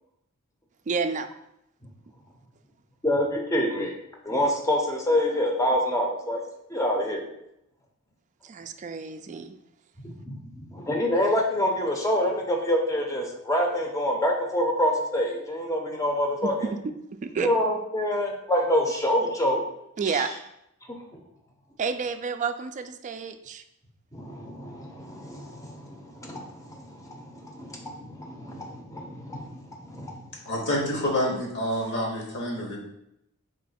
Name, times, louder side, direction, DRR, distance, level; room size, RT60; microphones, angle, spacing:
voice 1, 0.9-1.3 8.4-9.6 16.4-16.8 17.1-17.5 20.0-20.3 21.8-23.6, right 5 dB, 35° right, 8 dB, 0.3 m, -30 dB
voice 2, 3.0-3.9 4.2-6.4 6.7-7.2 10.0-16.7 17.4-19.6 20.1-20.3 20.9-21.2 24.1-30.3, left 1 dB, 15° left, 1 dB, 0.7 m, -27 dB
voice 3, 30.4-32.8, equal, 55° left, -1 dB, 1.3 m, -28 dB
3.7 x 3.2 x 4.2 m, 0.81 s
head